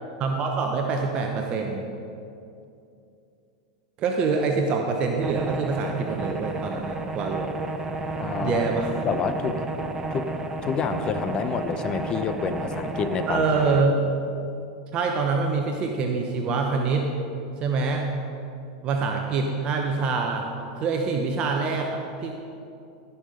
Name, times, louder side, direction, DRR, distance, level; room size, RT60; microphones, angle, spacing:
voice 1, 0.2-1.8 4.0-7.5 8.4-9.0 13.3-14.1 14.9-17.1 17.6-18.1 18.8-20.5 20.8-22.3, right 4 dB, 40° right, 2 dB, 0.9 m, -25 dB
sound 1, 5.2-13.9, right 2 dB, 20° right, 0.5 m, -32 dB
voice 2, 8.2-8.6 9.0-10.3 10.6-13.5, left 6 dB, 35° left, 10 dB, 0.8 m, -28 dB
14.5 x 5.7 x 5.1 m, 2.6 s
hypercardioid pair, 105°, 3 cm